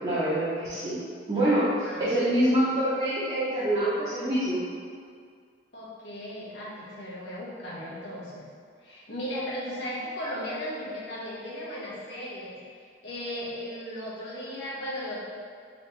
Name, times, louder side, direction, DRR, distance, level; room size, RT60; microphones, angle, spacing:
voice 1, 0.0-1.0 1.3-4.6, right 1 dB, 30° right, -13 dB, 0.7 m, -25 dB
voice 2, 1.8-2.7 5.7-8.4 8.8-15.2, equal, 70° left, -6 dB, 0.9 m, -37 dB
3.0 x 2.9 x 3.3 m, 2.1 s
head